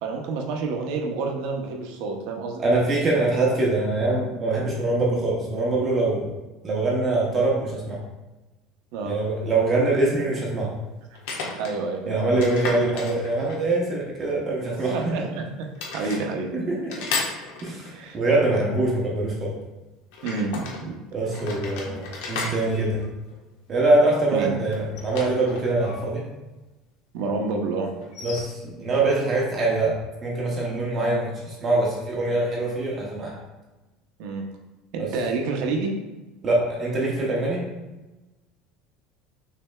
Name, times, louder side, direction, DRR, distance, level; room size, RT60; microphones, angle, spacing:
voice 1, 0.0-2.6 8.9-9.1 11.6-12.0 14.9-16.5 17.9-18.2 20.2-21.0 24.3-24.5 27.1-27.9 34.2-34.4 34.9-35.9, right 4 dB, 60° right, 2 dB, 0.7 m, -28 dB
voice 2, 2.6-6.3 6.6-8.0 9.1-10.7 12.1-15.1 16.5-17.1 17.6-19.5 21.1-23.1 23.7-26.2 28.2-33.4 35.0-35.1 36.4-37.6, right 2 dB, 25° right, -3 dB, 0.7 m, -24 dB
sound 1, 9.0-9.1 11.1-11.8 12.4-13.7 14.7-15.4 15.7-16.2 16.9-18.0 20.1-20.8 21.3-23.7 24.7-26.0 26.2-26.3 28.0-28.4, left 4 dB, 85° left, 1.1 m, -34 dB
6.4 x 3.3 x 2.2 m, 1.1 s
cardioid pair, 175°, 0 cm